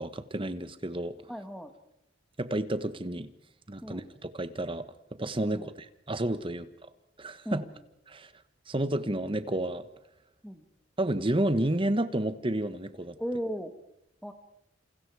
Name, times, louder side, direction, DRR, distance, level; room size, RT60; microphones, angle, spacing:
voice 1, 0.0-1.1 2.4-3.3 3.7-4.8 5.2-6.7 7.2-7.7 8.1-8.3 8.7-9.8 11.0-13.2, right 1 dB, 30° right, 12 dB, 1.3 m, -30 dB
voice 2, 1.3-1.7 3.8-4.1 5.4-5.7 7.5-7.8 10.4-10.7 13.2-13.7 14.2-14.3, equal, ahead, 7 dB, 1.8 m, -36 dB
28.0 x 28.0 x 4.9 m, 0.81 s
head